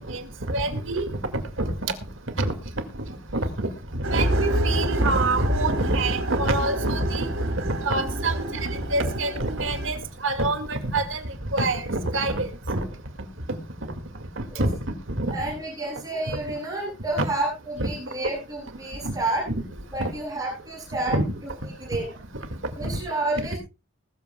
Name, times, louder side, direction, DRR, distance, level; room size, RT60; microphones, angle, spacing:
voice 1, 0.5-1.0 1.7-1.8 2.4-2.5 3.6-3.7 4.1-7.3 7.8-11.2 11.5-12.9 14.6-14.8 15.1-15.3 16.3-16.4 17.2-17.3 17.8-17.9 19.0-19.1 20.0-20.1 21.1-21.2 22.8-23.0, right 2 dB, 65° right, 8 dB, 2.0 m, -26 dB
sound 1, 4.0-9.9, right 1 dB, 85° right, 3.5 m, -27 dB
voice 2, 15.3-19.4 19.9-22.1 22.8-23.6, right 2 dB, 20° right, -9 dB, 7.5 m, -30 dB
20.5 x 13.5 x 2.2 m, 0.30 s
head